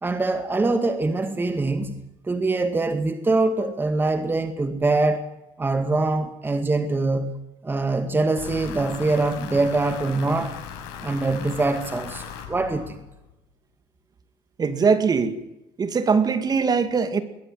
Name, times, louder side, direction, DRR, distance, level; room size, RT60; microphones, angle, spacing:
voice 1, 0.0-5.3 5.6-10.5 11.0-13.0, right 3 dB, 15° right, 2.0 m, -24 dB
sound 1, 8.4-13.3, left 8 dB, 90° left, 6.4 m, -38 dB
voice 2, 14.6-15.4 15.8-17.2, right 5 dB, 35° right, 2.4 m, -21 dB
22.0 x 18.5 x 7.9 m
supercardioid pair, 100°, 12 cm